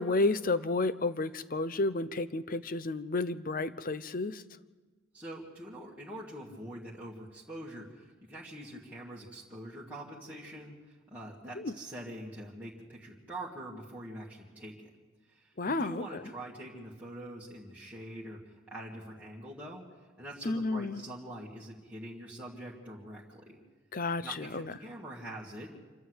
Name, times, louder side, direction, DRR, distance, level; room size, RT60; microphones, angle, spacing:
voice 1, 0.0-4.4 11.6-11.7 15.6-16.2 20.4-21.0 23.9-24.7, left 2 dB, 40° left, 14 dB, 0.7 m, -31 dB
voice 2, 5.1-14.9 15.3-18.4 18.7-19.8 20.2-23.6 24.2-25.8, right 1 dB, 5° right, -7 dB, 2.3 m, -44 dB
27.0 x 12.5 x 8.1 m, 1.3 s
head